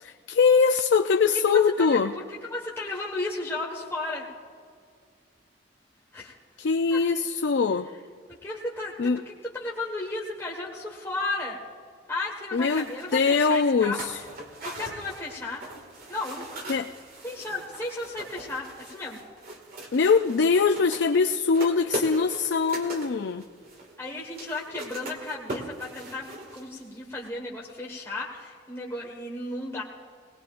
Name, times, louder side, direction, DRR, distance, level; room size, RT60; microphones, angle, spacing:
voice 1, 0.0-2.1 6.6-7.9 9.0-9.2 12.5-12.9 13.1-14.2 16.7-16.9 19.9-23.4, left 5 dB, 70° left, 6 dB, 0.4 m, -22 dB
voice 2, 1.5-4.3 6.1-6.4 6.9-7.0 8.3-9.1 9.5-11.6 12.1-14.1 14.6-15.6 16.1-16.4 17.2-19.2 24.0-29.8, left 2 dB, 15° left, -4 dB, 1.5 m, -34 dB
sound 1, 12.7-27.0 27.2-27.3, right 1 dB, 55° right, 2.1 m, -40 dB
20.0 x 19.5 x 2.5 m, 2.1 s
head